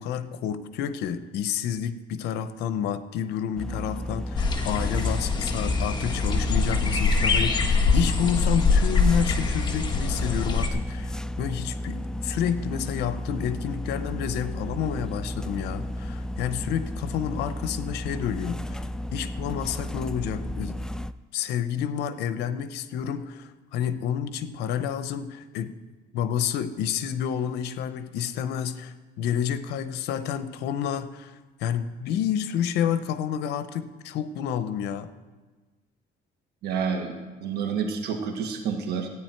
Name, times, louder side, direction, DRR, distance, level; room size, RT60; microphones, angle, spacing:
voice 1, 0.0-20.8 21.3-25.7 26.1-35.1, left 9 dB, 85° left, 13 dB, 0.7 m, -29 dB
sound 1, 3.6-21.1, left 1 dB, 5° left, 0.3 m, -33 dB
sound 2, 4.4-10.7, left 4 dB, 25° left, 1.4 m, -24 dB
voice 2, 36.6-37.1 37.4-39.1, right 6 dB, 75° right, 3 dB, 1.6 m, -28 dB
14.0 x 9.4 x 4.5 m, 1.3 s
cardioid pair, 110°, 17 cm